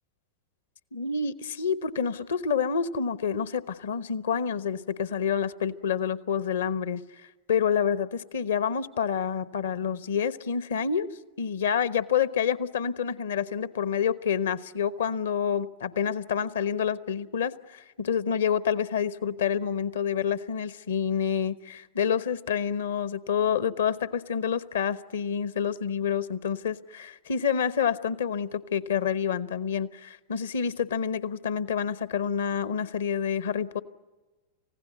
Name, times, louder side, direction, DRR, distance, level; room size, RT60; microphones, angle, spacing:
voice 1, 0.9-7.0 7.5-11.1 11.4-33.8, left 7 dB, 65° left, 16 dB, 1.0 m, -28 dB
29.5 x 16.5 x 9.5 m, 1.3 s
figure-of-eight pair, 90°, 0 cm